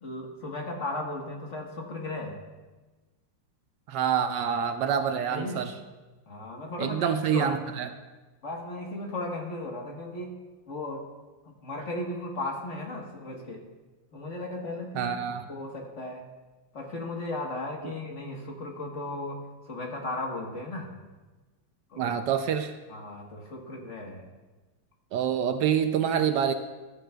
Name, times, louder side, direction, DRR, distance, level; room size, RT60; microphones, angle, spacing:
voice 1, 0.0-2.4 5.3-5.7 6.3-7.6 8.4-10.3 10.7-11.0 11.4-13.6 14.1-15.1 15.5-16.2 16.7-19.4 19.7-20.9 21.9-22.1 22.9-24.3, left 2 dB, 45° left, 0 dB, 1.5 m, -36 dB
voice 2, 3.9-5.7 6.8-7.9 14.9-15.4 22.0-22.7 25.1-26.5, right 8 dB, 75° right, 8 dB, 1.1 m, -26 dB
14.5 x 11.5 x 2.3 m, 1.2 s
omnidirectional pair, 2.0 m